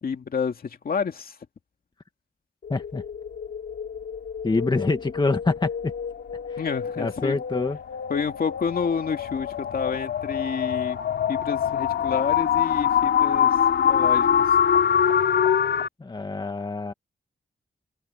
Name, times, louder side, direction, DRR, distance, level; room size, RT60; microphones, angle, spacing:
voice 1, 0.0-1.4 6.6-7.4 8.1-11.0 11.3-13.5 13.9-14.4, left 6 dB, 60° left, 2.6 m, -29 dB
sound 1, 2.6-15.9, left 8 dB, 90° left, 3.3 m, -25 dB
voice 2, 2.7-3.0 4.4-5.9 6.5-6.6 7.0-7.8 16.0-16.9, left 3 dB, 25° left, 1.9 m, -26 dB
wide cardioid pair, 105°, 18 cm